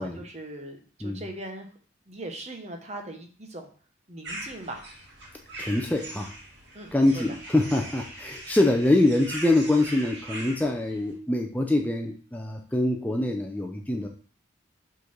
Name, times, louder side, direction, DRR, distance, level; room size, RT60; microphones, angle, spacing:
voice 1, 0.0-1.7 2.1-3.7 4.1-4.8 6.7-7.2, right 1 dB, 35° right, 3 dB, 1.1 m, -40 dB
sound 1, 4.2-11.1, right 1 dB, 65° right, 2.2 m, -41 dB
voice 2, 5.6-6.3 6.9-14.1, left 2 dB, 10° left, 2 dB, 0.5 m, -24 dB
5.7 x 3.9 x 5.9 m, 0.42 s
head